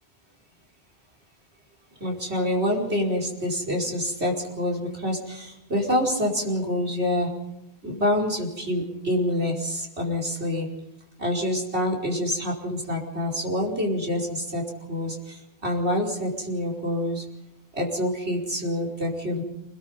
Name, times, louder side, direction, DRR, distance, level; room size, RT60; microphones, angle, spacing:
voice 1, 2.0-7.3 7.8-10.7 11.2-14.6 14.9-17.2 17.7-19.4, left 1 dB, 90° right, -1 dB, 5.3 m, -26 dB
28.5 x 21.0 x 5.4 m, 0.88 s
omnidirectional pair, 1.1 m